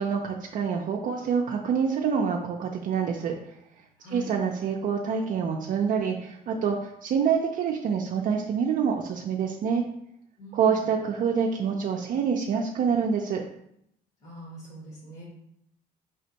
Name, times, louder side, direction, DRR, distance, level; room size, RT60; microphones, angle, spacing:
voice 1, 0.0-3.3 4.1-9.8 10.5-13.4, right 6 dB, 55° right, 1 dB, 0.4 m, -26 dB
voice 2, 4.0-4.3 10.4-10.8 14.2-15.2, left 1 dB, 45° left, -5 dB, 1.4 m, -42 dB
4.2 x 3.4 x 2.8 m, 0.75 s
cardioid pair, 110°, 17 cm